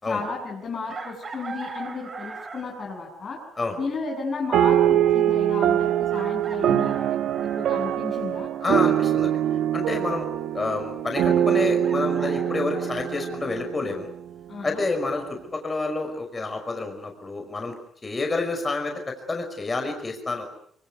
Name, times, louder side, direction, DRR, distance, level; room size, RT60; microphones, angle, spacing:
voice 1, 0.0-3.4 3.8-7.0 7.4-8.5 14.5-14.8, left 4 dB, 45° left, -2 dB, 7.9 m, -33 dB
Chicken rooster, 0.9-2.8 4.5-4.6 6.1-8.0 11.5-13.4, right 3 dB, 40° right, 6.4 m, -40 dB
sound 1, 4.5-14.3, right 10 dB, 80° right, 1.1 m, -23 dB
voice 2, 8.6-9.4 9.7-10.3 10.5-14.1 14.6-17.7 18.0-20.5, left 3 dB, 30° left, 4 dB, 5.5 m, -28 dB
24.5 x 24.0 x 8.3 m, 0.66 s
cardioid pair, 90°, 0 cm